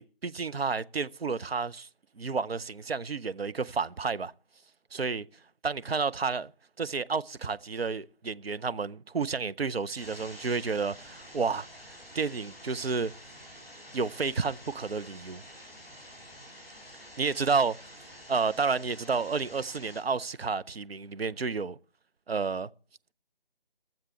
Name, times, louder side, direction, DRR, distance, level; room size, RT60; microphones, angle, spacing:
voice 1, 0.0-1.9 2.2-4.3 4.9-5.3 5.6-6.5 6.8-11.7 12.1-13.1 13.9-15.4 17.2-17.8 18.3-21.8 22.3-22.7, right 4 dB, 85° right, 0.7 m, -30 dB
sound 1, 9.9-20.0, equal, 10° right, 3.7 m, -49 dB
13.0 x 7.4 x 7.7 m
figure-of-eight pair, 155°, 29 cm